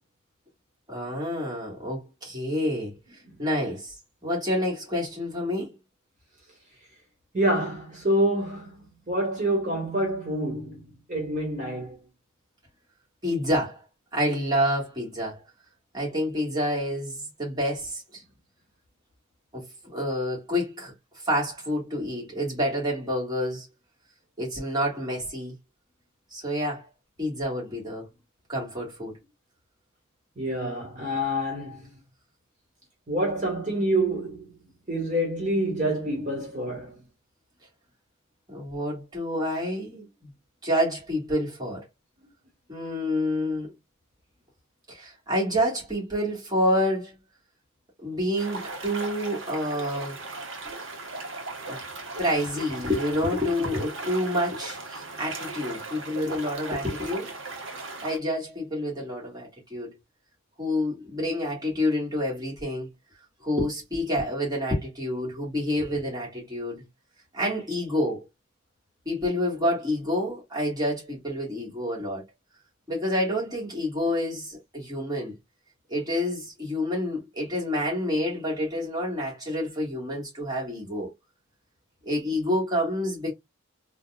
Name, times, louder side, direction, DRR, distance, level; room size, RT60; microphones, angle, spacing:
voice 1, 0.9-3.0 3.4-3.9 4.2-5.8 13.2-13.8 14.1-15.4 15.9-18.2 19.5-20.9 21.2-23.7 24.4-25.5 26.3-26.9 27.2-28.1 28.5-29.2 38.5-40.3 40.6-41.8 42.7-43.7 44.9-47.1 48.0-50.2 51.7-51.8 52.2-57.3 58.0-60.0 60.6-62.9 63.4-66.8 67.3-68.3 69.0-72.2 72.9-75.3 75.9-81.1 82.0-83.3, equal, 20° right, 1.6 m, -28 dB
voice 2, 7.3-12.0 30.4-31.9 33.1-34.6 34.9-37.0, right 1 dB, 35° right, 1.4 m, -27 dB
sound 1, 48.4-58.2, right 3 dB, 65° right, 1.0 m, -37 dB
3.8 x 2.4 x 2.3 m
head